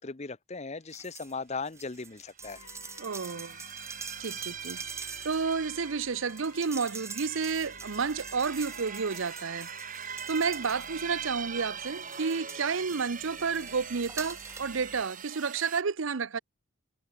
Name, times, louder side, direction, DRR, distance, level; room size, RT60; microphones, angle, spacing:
voice 1, 0.0-2.6, left 4 dB, 30° left, 0.8 m, -38 dB
sound 1, 0.9-1.3 1.6-11.4 11.9-14.8 15.1-15.2, right 4 dB, 15° right, 2.8 m, -46 dB
sound 2, 2.0-2.1 2.5-15.8, right 8 dB, 40° right, 2.8 m, -42 dB
sound 3, 2.4-15.1, left 4 dB, 75° left, 6.6 m, -53 dB
voice 2, 3.0-3.6 4.2-4.8 5.2-9.7 10.3-16.4, right 5 dB, 65° right, 0.7 m, -31 dB
head